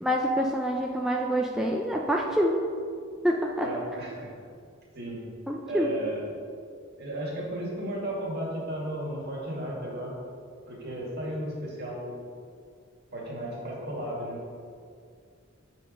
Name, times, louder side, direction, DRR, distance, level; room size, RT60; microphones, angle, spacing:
voice 1, 0.0-2.6 3.2-3.7 5.5-5.9, equal, ahead, -1 dB, 0.4 m, -26 dB
voice 2, 3.6-4.3 4.9-5.2 5.7-6.3 7.0-10.2 10.7-12.2 13.1-14.4, right 1 dB, 55° right, -4 dB, 2.0 m, -34 dB
8.0 x 4.7 x 5.2 m, 2.2 s
head